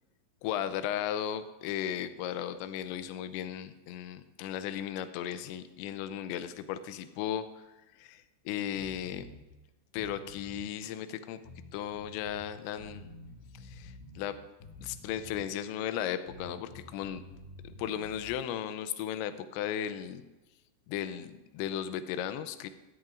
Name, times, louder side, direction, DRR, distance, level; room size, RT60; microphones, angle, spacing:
voice 1, 0.4-7.5 8.0-9.3 9.9-11.4 11.7-13.1 13.6-14.4 14.8-17.2 17.8-20.2 20.9-22.7, left 10 dB, 85° left, 11 dB, 2.6 m, -36 dB
sound 1, 8.7-9.4 9.9-10.7 11.5-12.5 12.8-14.2 14.6-15.6 16.3-18.3, left 2 dB, 65° left, 3.9 m, -49 dB
18.0 x 13.5 x 2.5 m, 1.1 s
omnidirectional pair, 5.8 m